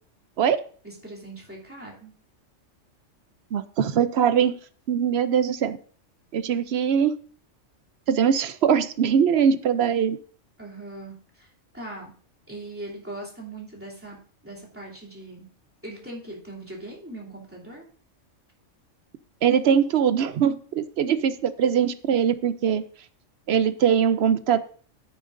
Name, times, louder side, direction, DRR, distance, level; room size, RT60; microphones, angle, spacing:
voice 1, 0.8-2.1 10.6-11.5 11.7-12.1 12.5-14.2 14.4-15.4 15.8-17.9, right 1 dB, 10° right, -5 dB, 2.9 m, -40 dB
voice 2, 3.5-4.5 4.9-5.8 6.3-7.1 8.1-10.2 19.4-22.8 23.5-24.6, right 8 dB, 65° right, 13 dB, 0.8 m, -21 dB
13.0 x 10.0 x 2.6 m, 0.43 s
omnidirectional pair, 1.3 m